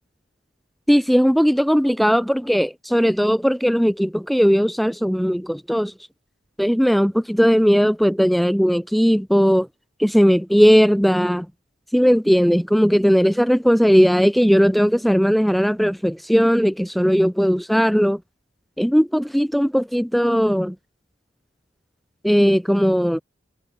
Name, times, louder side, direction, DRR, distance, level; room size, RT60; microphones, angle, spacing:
voice 1, 0.9-5.9 6.6-9.7 10.0-11.5 11.9-18.2 18.8-20.7 22.2-23.2, equal, ahead, 1.0 m, -18 dB
head